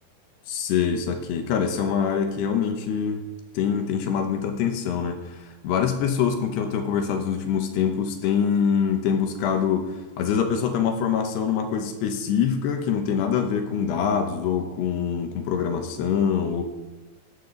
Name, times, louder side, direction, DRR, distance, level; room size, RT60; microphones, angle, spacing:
voice 1, 0.5-3.2 3.5-16.6, left 7 dB, 75° left, 5 dB, 3.1 m, -24 dB
15.0 x 11.5 x 4.0 m, 1.1 s
omnidirectional pair, 5.0 m